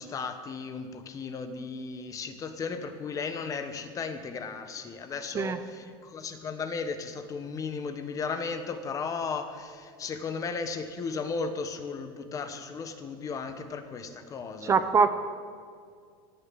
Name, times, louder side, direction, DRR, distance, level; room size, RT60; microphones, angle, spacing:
voice 1, 0.0-14.9, left 5 dB, 25° left, 9 dB, 1.2 m, -35 dB
voice 2, 14.7-15.1, right 5 dB, 25° right, 10 dB, 0.7 m, -22 dB
17.5 x 7.1 x 8.7 m, 2.2 s
supercardioid pair, 140°, 12 cm